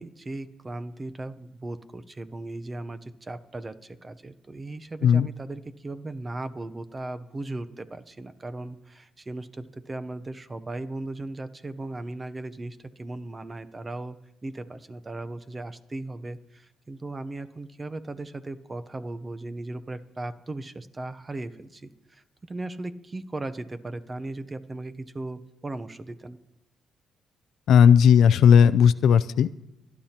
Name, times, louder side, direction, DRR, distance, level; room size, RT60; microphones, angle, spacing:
voice 1, 0.0-14.2 14.4-26.4, right 2 dB, 25° right, 11 dB, 0.7 m, -37 dB
voice 2, 27.7-29.5, left 7 dB, 75° left, 16 dB, 0.3 m, -16 dB
25.0 x 10.5 x 2.9 m, 0.89 s
cardioid pair, 90°, 0 cm